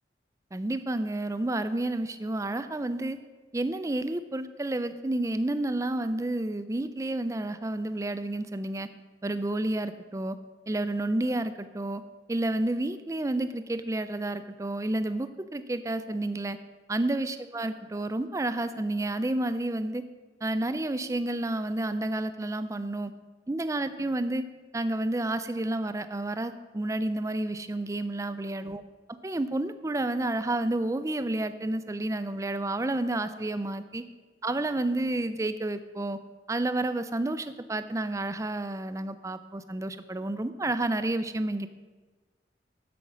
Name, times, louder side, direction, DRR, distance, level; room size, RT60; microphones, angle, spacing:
voice 1, 0.5-3.2 3.5-8.9 9.2-10.4 10.7-12.0 12.3-16.6 16.9-20.1 20.4-23.1 23.5-24.4 24.7-28.8 29.1-34.0 34.4-36.2 36.5-41.7, right 2 dB, 15° right, 12 dB, 0.4 m, -30 dB
12.5 x 5.2 x 6.0 m, 1.3 s
head